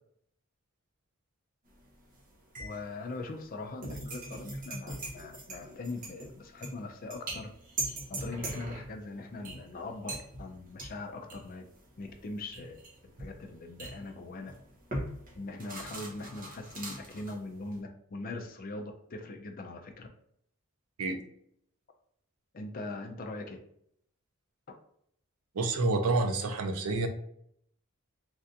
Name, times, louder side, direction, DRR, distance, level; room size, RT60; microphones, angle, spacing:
sound 1, 1.7-2.2 2.5-17.8, right 2 dB, 35° right, 0.7 m, -41 dB
voice 1, 2.6-7.5 8.1-11.6 12.0-12.8 13.2-14.5 15.4-20.1 22.5-23.6, left 2 dB, 40° left, 5 dB, 0.3 m, -41 dB
voice 2, 25.6-27.1, right 3 dB, 80° right, 6 dB, 0.5 m, -28 dB
3.3 x 2.5 x 2.6 m, 0.70 s
head